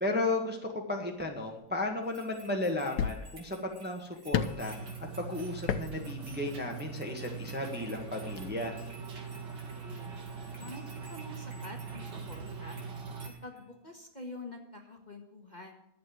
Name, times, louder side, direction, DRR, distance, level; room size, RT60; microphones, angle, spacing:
voice 1, 0.0-4.9 5.2-8.8, left 2 dB, 5° right, 2 dB, 1.3 m, -34 dB
sound 1, 1.3-1.5 2.4-2.5 3.0-3.5 4.3-4.7 5.6-6.0 6.2-6.3, left 8 dB, 85° left, 1.4 m, -31 dB
sound 2, 2.0-13.6, right 1 dB, 60° right, 3.7 m, -55 dB
sound 3, 4.5-13.3, right 5 dB, 85° right, 2.5 m, -42 dB
voice 2, 9.5-10.1 10.6-12.8 13.4-15.7, left 2 dB, 25° left, 2 dB, 1.5 m, -47 dB
11.5 x 8.0 x 7.8 m, 0.83 s
omnidirectional pair, 1.8 m